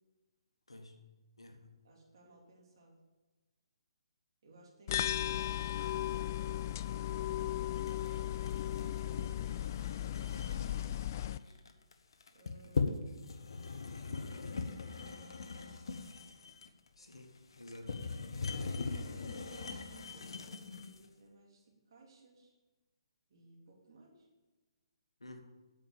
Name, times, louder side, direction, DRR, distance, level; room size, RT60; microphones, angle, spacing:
voice 1, 0.7-1.0 1.4-1.8 17.0-18.1 25.2-25.4, left 2 dB, 75° left, 4 dB, 1.8 m, -51 dB
voice 2, 1.8-3.0 4.4-7.4 8.8-11.6 12.3-13.7 14.4-16.0 18.5-22.5 23.3-24.3, right 2 dB, 50° right, -2 dB, 3.5 m, -60 dB
sound 1, 4.9-11.4, left 12 dB, 35° left, 0.3 m, -36 dB
sound 2, 7.7-21.1, left 4 dB, 55° left, 1.0 m, -40 dB
8.8 x 7.6 x 7.0 m, 1.2 s
figure-of-eight pair, 135°, 3 cm